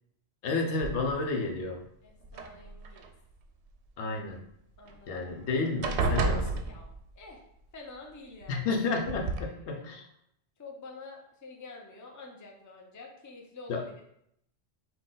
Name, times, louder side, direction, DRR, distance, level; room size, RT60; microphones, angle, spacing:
voice 1, 0.4-1.8 4.0-4.4 5.1-6.6 8.5-10.0 13.7-13.8, left 3 dB, 70° left, 2 dB, 1.0 m, -31 dB
sound 1, 0.8-1.4 2.2-3.1 4.9-5.0 5.3-5.5 5.8-7.3 8.4-8.5 9.0-9.4, right 3 dB, 70° right, 0.8 m, -31 dB
voice 2, 2.0-3.1 4.8-5.2 6.6-6.9 7.2-7.4 7.7-8.7 9.0-10.0 10.6-14.0, left 3 dB, 25° left, 1 dB, 0.5 m, -48 dB
6.0 x 2.2 x 3.8 m, 0.74 s
omnidirectional pair, 1.2 m